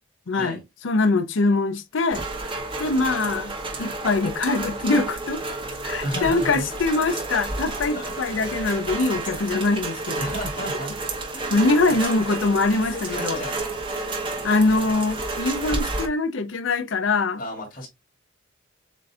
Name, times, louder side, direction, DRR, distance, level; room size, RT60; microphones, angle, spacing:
voice 1, 0.3-0.6 0.8-2.3 2.8-3.5 3.8-5.4 5.8-10.3 11.5-13.4 14.4-17.4, left 3 dB, 80° left, 0.6 m, -23 dB
Rain, 2.1-16.1, right 2 dB, 25° right, 0.9 m, -31 dB
voice 2, 6.0-6.7 7.9-8.1 10.2-10.9 11.3-12.4 12.9-13.8 17.4-17.9, left 1 dB, 45° left, 2.7 m, -33 dB
7.3 x 2.7 x 2.4 m
head